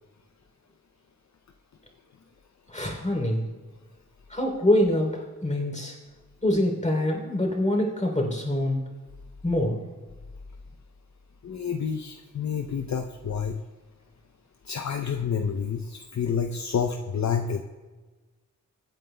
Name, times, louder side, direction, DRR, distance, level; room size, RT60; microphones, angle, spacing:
voice 1, 2.7-3.4 4.3-5.9 6.4-8.8 9.4-9.8, left 1 dB, 20° left, 1 dB, 3.1 m, -25 dB
voice 2, 11.4-13.6 14.6-17.6, left 7 dB, 55° left, 5 dB, 0.6 m, -29 dB
23.5 x 9.0 x 2.2 m, 1.3 s
wide cardioid pair, 70°, 32 cm